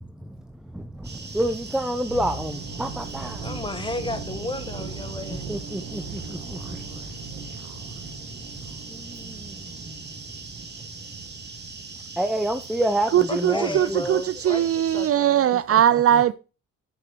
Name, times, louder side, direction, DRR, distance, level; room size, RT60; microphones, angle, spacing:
voice 1, 0.0-3.5 5.3-7.8 8.8-10.2 12.2-14.0 16.1-16.2, right 1 dB, ahead, 0.8 m, -29 dB
sound 1, 1.0-15.1, right 4 dB, 35° right, 2.6 m, -40 dB
sound 2, 2.1-12.1 12.3-12.6, right 4 dB, 85° right, 1.9 m, -40 dB
voice 2, 3.2-5.6 13.3-14.7 14.9-15.5, left 2 dB, 15° left, 1.5 m, -33 dB
voice 3, 13.1-16.3, right 10 dB, 50° right, 0.5 m, -20 dB
7.7 x 6.9 x 4.6 m
cardioid pair, 90°, 30 cm